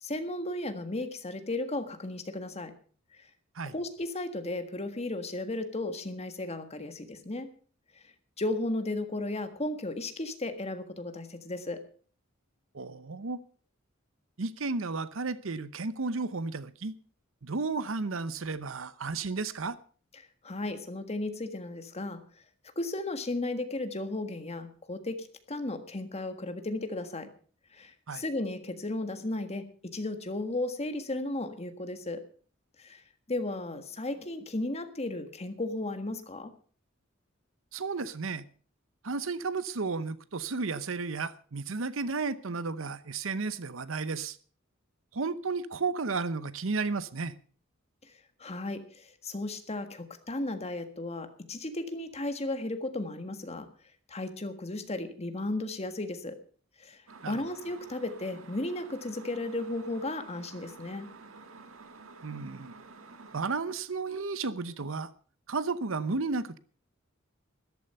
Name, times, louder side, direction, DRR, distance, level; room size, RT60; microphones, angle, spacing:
voice 1, 0.0-2.7 3.1-3.2 3.6-7.5 8.4-11.8 20.1-22.2 22.7-27.3 27.7-32.2 32.8-33.0 33.3-36.5 48.0-48.1 48.4-53.7 54.1-56.4 56.8-61.1, left 2 dB, 30° left, 1.6 m, -35 dB
voice 2, 12.7-13.4 14.4-16.9 17.4-19.8 28.1-28.2 37.7-38.4 39.0-44.4 45.1-47.3 57.2-57.4 62.2-62.7 63.3-65.1 65.5-66.6, right 4 dB, 70° right, 0.8 m, -33 dB
sound 1, 57.1-63.5, right 4 dB, 90° right, 1.7 m, -50 dB
13.5 x 12.5 x 5.5 m
head